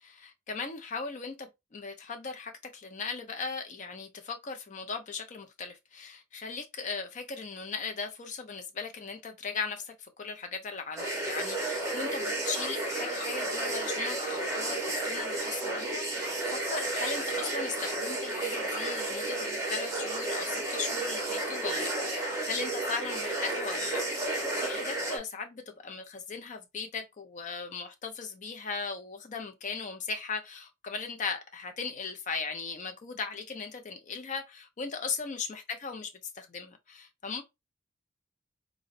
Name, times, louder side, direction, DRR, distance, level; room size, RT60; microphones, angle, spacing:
voice 1, 0.0-36.1 36.3-37.4, left 5 dB, 40° left, 0.5 m, -38 dB
sound 1, 11.0-25.2, right 2 dB, 15° right, 0.7 m, -32 dB
3.7 x 2.1 x 2.5 m
head